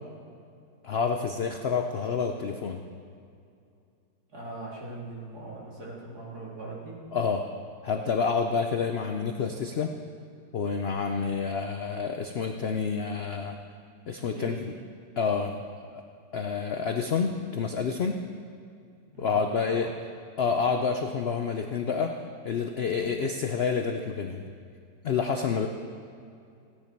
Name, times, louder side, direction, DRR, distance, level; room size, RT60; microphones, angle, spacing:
voice 1, 0.8-2.8 7.1-7.4 7.8-9.9 10.5-13.6 14.1-14.5 15.2-15.6 15.9-16.0 16.3-18.2 19.2-19.9 20.4-22.1 22.4-24.4 25.0-25.7, left 5 dB, 70° left, 4 dB, 0.5 m, -28 dB
voice 2, 4.3-7.0 14.4-14.8 19.1-19.9, right 2 dB, 60° right, -5 dB, 3.1 m, -41 dB
16.0 x 10.0 x 4.5 m, 2.4 s
omnidirectional pair, 1.9 m